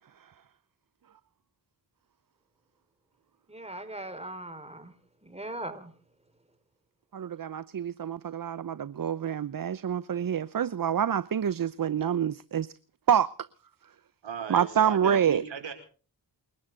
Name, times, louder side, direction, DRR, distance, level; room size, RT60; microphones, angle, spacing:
voice 1, 3.5-4.9 5.2-5.9, right 1 dB, 15° right, 4.7 m, -39 dB
voice 2, 7.1-12.7 13.1-13.3 14.5-15.4, right 8 dB, 50° right, 0.8 m, -27 dB
voice 3, 14.2-15.7, right 6 dB, 75° right, 4.8 m, -37 dB
29.0 x 12.0 x 3.8 m
cardioid pair, 50°, 45 cm